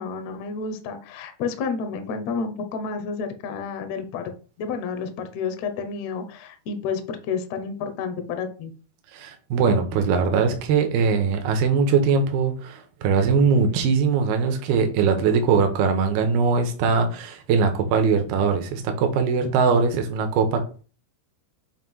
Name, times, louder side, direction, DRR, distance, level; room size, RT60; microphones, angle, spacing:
voice 1, 0.0-4.3 4.6-8.7, left 5 dB, 85° left, 7 dB, 1.5 m, -30 dB
voice 2, 9.1-20.8, right 5 dB, 80° right, 5 dB, 2.8 m, -21 dB
7.4 x 2.7 x 5.4 m, 0.37 s
omnidirectional pair, 4.5 m